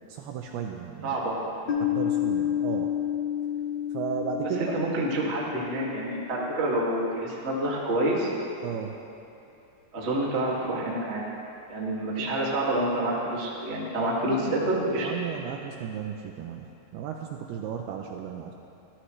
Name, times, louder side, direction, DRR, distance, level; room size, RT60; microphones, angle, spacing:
voice 1, 0.0-1.2 1.9-2.9 3.9-4.8 8.6-9.0 14.2-14.7 15.0-16.7 16.9-18.5, right 8 dB, 80° right, 3 dB, 2.4 m, -34 dB
voice 2, 1.0-1.4 4.6-8.3 9.9-11.2 11.7-15.1, right 1 dB, 30° right, -4 dB, 1.2 m, -28 dB
Piano, 1.7-7.1, left 10 dB, 55° left, 2.2 m, -30 dB
24.0 x 14.0 x 3.2 m, 2.7 s
omnidirectional pair, 5.1 m